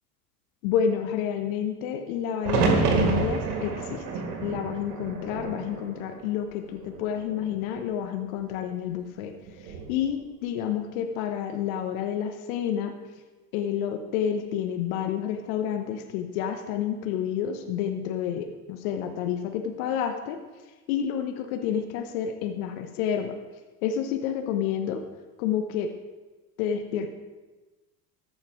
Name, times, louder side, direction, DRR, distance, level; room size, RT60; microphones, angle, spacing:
voice 1, 0.6-4.0 4.4-9.3 9.6-12.9 13.5-20.4 20.9-23.3 23.8-25.0 25.4-25.9 26.6-27.1, left 8 dB, 65° left, 7 dB, 1.0 m, -29 dB
sound 1, 2.4-6.5 6.8-7.6 9.5-10.0, right 4 dB, 75° right, 1.6 m, -28 dB
14.0 x 5.7 x 4.5 m, 1.2 s
hypercardioid pair, 70°, 45 cm